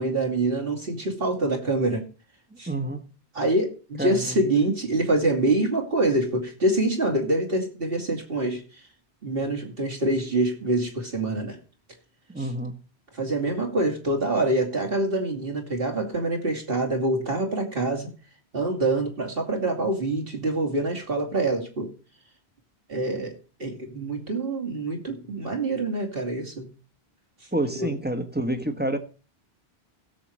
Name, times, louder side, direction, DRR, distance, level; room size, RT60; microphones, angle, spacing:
voice 1, 0.0-2.0 2.6-2.7 3.3-8.6 9.2-11.6 12.4-12.5 13.1-18.1 18.5-21.9 22.9-23.3 23.6-26.7 27.8-27.9, right 2 dB, 60° right, 2.7 m, -25 dB
voice 2, 2.7-3.0 4.0-4.4 12.3-12.8 27.5-29.0, right 1 dB, 10° right, 1.1 m, -28 dB
16.5 x 7.6 x 3.1 m
omnidirectional pair, 1.1 m